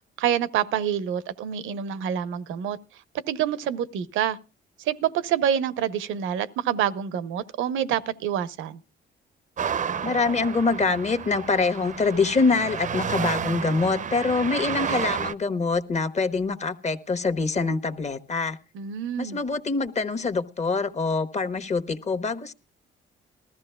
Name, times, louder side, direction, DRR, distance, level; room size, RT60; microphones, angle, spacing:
voice 1, 0.2-2.8 3.3-4.4 4.8-8.8 18.7-19.4, right 9 dB, 90° right, 0.7 m, -27 dB
sound 1, 9.6-15.3, right 7 dB, 40° right, 0.5 m, -31 dB
voice 2, 10.0-18.6 19.2-22.5, left 4 dB, 35° left, 1.1 m, -25 dB
20.5 x 14.0 x 2.3 m
cardioid pair, 90°, 20 cm